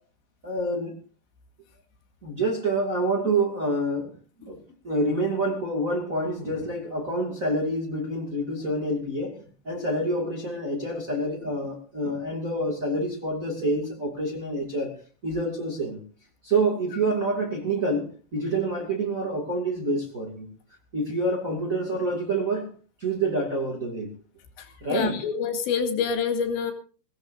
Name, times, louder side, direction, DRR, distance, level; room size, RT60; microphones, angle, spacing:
voice 1, 0.4-0.9 2.2-4.1 4.5-4.6 4.8-15.0 15.2-16.0 16.4-20.5 20.9-22.7 23.0-24.1 24.8-25.2, right 2 dB, 25° right, 0 dB, 2.1 m, -27 dB
voice 2, 24.6-26.7, left 6 dB, 85° left, 5 dB, 4.4 m, -27 dB
23.0 x 17.0 x 2.6 m, 0.39 s
omnidirectional pair, 5.0 m